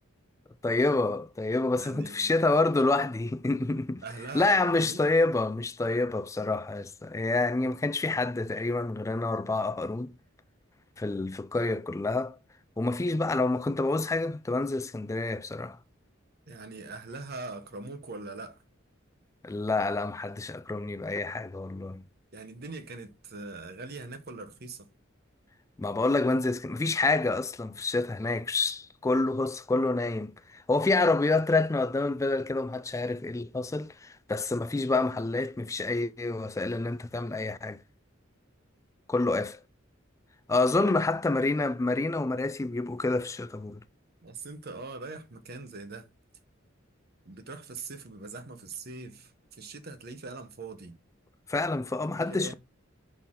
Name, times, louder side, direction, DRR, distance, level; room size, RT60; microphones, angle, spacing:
voice 1, 0.6-4.0 4.3-10.1 11.0-12.4 12.8-15.8 19.4-22.0 25.8-37.8 39.1-39.6 40.5-43.8 51.5-52.5, left 2 dB, 15° left, 0.3 m, -28 dB
voice 2, 1.8-2.3 4.0-5.0 16.5-18.6 22.3-24.9 40.6-40.9 44.2-46.1 47.2-51.0 52.1-52.5, right 3 dB, 50° right, 1.0 m, -41 dB
6.2 x 4.1 x 3.7 m
head